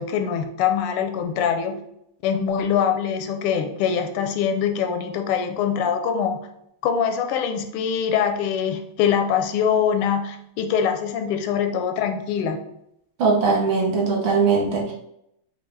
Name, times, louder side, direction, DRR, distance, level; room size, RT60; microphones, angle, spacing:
voice 1, 0.0-1.8 2.2-6.4 6.8-12.6, left 7 dB, 85° left, 6 dB, 1.5 m, -23 dB
voice 2, 13.2-14.9, right 4 dB, 70° right, -2 dB, 1.7 m, -20 dB
5.8 x 2.2 x 3.2 m, 0.77 s
omnidirectional pair, 2.4 m